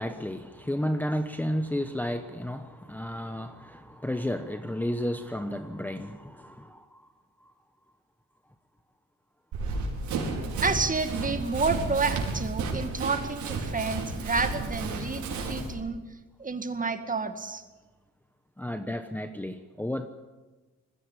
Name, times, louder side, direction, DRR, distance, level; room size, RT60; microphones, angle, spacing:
voice 1, 0.0-7.1 7.4-7.5 18.6-20.1, left 1 dB, 5° left, 7 dB, 1.0 m, -32 dB
Run, 9.5-15.7, right 3 dB, 75° right, 5.0 m, -32 dB
voice 2, 10.6-16.0 16.4-17.6, right 4 dB, 25° right, 8 dB, 2.0 m, -29 dB
20.5 x 15.5 x 8.3 m, 1.2 s
cardioid pair, 90°, 30 cm